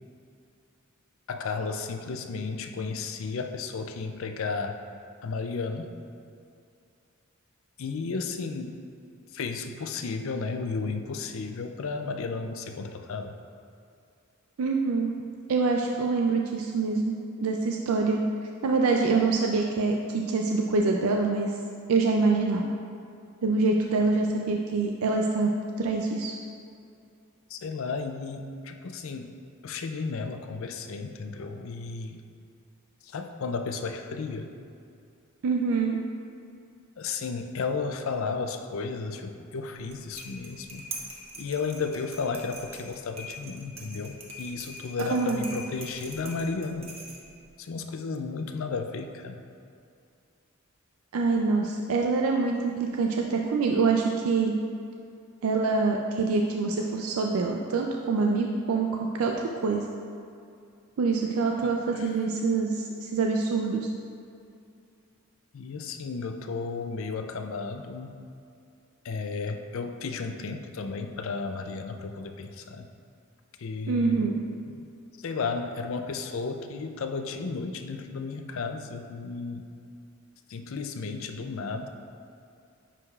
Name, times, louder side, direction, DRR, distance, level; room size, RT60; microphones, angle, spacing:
voice 1, 1.3-4.8 5.2-6.0 7.8-8.8 9.3-13.4 27.5-29.3 29.6-32.2 33.0-34.5 37.0-40.9 41.4-46.9 47.6-49.4 61.6-62.2 65.5-68.2 69.0-72.9 73.6-74.3 75.2-79.7 80.5-81.9, left 4 dB, 70° left, 6 dB, 0.4 m, -33 dB
voice 2, 14.6-15.1 15.5-18.2 18.6-21.6 21.9-22.7 23.4-25.5 25.8-26.3 35.4-36.0 45.0-45.4 51.1-54.5 55.4-59.8 61.0-63.9 73.9-74.4, right 4 dB, 85° right, 1 dB, 0.4 m, -25 dB
sound 1, 39.8-47.5, right 1 dB, 30° right, 0.8 m, -43 dB
9.7 x 4.8 x 2.4 m, 2.5 s
head